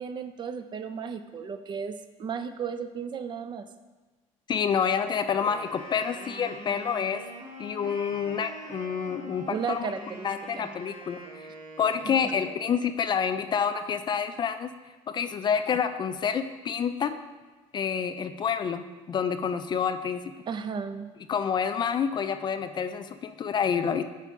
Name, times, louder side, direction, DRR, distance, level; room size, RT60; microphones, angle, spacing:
voice 1, 0.0-3.6 9.5-10.3 10.6-10.7 12.0-12.1 20.5-21.1, right 6 dB, 35° right, 10 dB, 0.4 m, -34 dB
voice 2, 4.5-7.2 7.6-9.9 10.2-11.5 11.8-14.7 15.1-17.2 17.7-20.3 21.3-24.0, left 7 dB, 35° left, 10 dB, 0.3 m, -28 dB
Wind instrument woodwind instrument, 5.2-12.9, right 1 dB, 70° right, 1.5 m, -44 dB
8.0 x 4.5 x 3.6 m, 1.3 s
cardioid pair, 115°, 14 cm